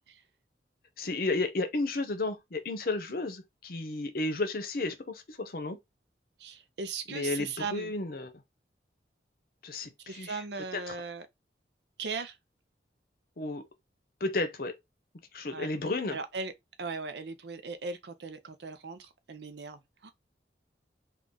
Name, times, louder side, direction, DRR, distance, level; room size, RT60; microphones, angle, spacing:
voice 1, 1.0-5.8 7.1-8.3 9.6-9.9 10.2-10.3 10.7-10.9 13.4-13.6 14.2-14.7 15.3-16.2, left 2 dB, 55° left, 0.7 m, -32 dB
voice 2, 6.4-7.9 10.0-11.3 12.0-12.4 15.5-15.7 16.1-16.5 16.8-20.1, right 4 dB, 75° right, 0.6 m, -38 dB
3.6 x 2.4 x 3.8 m
head